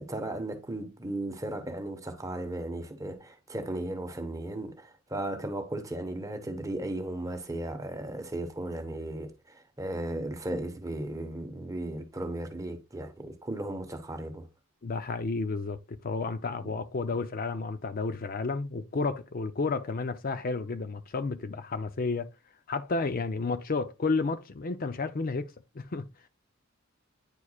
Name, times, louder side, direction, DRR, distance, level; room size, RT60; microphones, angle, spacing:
voice 1, 0.0-14.5 16.6-16.7, right 1 dB, 15° right, 1.1 m, -36 dB
voice 2, 14.8-22.3 22.7-26.1, left 3 dB, 45° left, 0.5 m, -31 dB
9.7 x 4.6 x 2.4 m
head